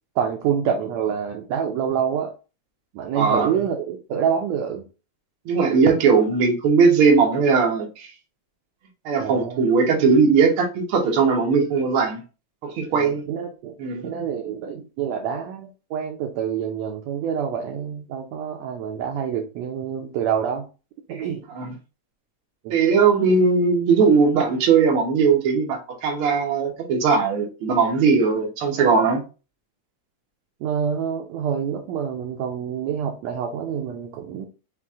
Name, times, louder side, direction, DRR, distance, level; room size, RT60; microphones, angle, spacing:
voice 1, 0.1-2.3 2.9-4.8 9.2-9.6 12.9-13.8 14.0-20.7 21.1-21.4 22.6-22.7 30.6-34.5, right 8 dB, 75° right, 1.6 m, -27 dB
voice 2, 3.1-3.5 5.4-8.1 9.0-12.2 12.6-13.2 13.8-14.1 21.5-21.7 22.7-29.2, right 5 dB, 60° right, 1.4 m, -19 dB
5.9 x 2.5 x 3.5 m
omnidirectional pair, 3.7 m